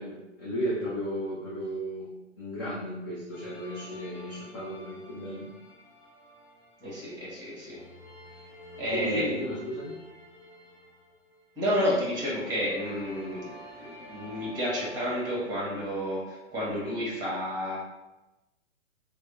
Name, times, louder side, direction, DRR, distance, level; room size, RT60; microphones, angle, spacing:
voice 1, 0.0-5.5 8.9-10.0, equal, 20° left, -7 dB, 0.4 m, -34 dB
sound 1, 3.3-7.2 7.6-11.6 12.3-15.9, equal, 45° left, 0.9 m, -50 dB
voice 2, 6.8-7.8 8.8-9.3 11.5-17.8, equal, 10° right, -6 dB, 1.3 m, -31 dB
3.2 x 2.1 x 3.8 m, 1.0 s
figure-of-eight pair, 115°, 37 cm